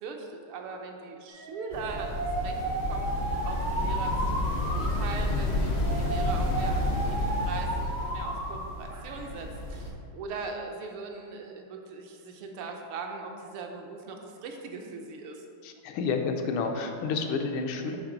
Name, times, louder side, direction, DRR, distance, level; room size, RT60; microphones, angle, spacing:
voice 1, 0.0-3.1 3.4-15.4, right 4 dB, 85° right, 2 dB, 1.6 m, -40 dB
Alarm, 1.3-8.5 8.9-9.5, right 2 dB, 45° right, 0.6 m, -34 dB
sound 1, 1.7-9.9, left 1 dB, 65° left, 0.6 m, -31 dB
voice 2, 15.6-18.0, left 4 dB, 80° left, 4 dB, 1.5 m, -30 dB
9.2 x 3.6 x 3.8 m, 2.4 s
omnidirectional pair, 2.3 m